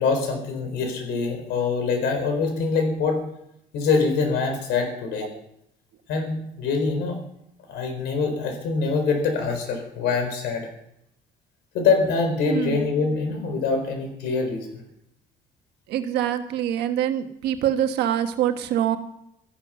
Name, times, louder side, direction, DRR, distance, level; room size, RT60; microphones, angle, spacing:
voice 1, 0.0-3.2 3.7-5.3 6.1-7.2 7.7-10.7 11.7-14.8, left 4 dB, 85° left, 5 dB, 4.2 m, -24 dB
voice 2, 12.5-12.9 15.9-19.0, right 10 dB, 80° right, 7 dB, 1.4 m, -24 dB
13.5 x 11.5 x 5.8 m, 0.78 s
cardioid pair, 110°, 17 cm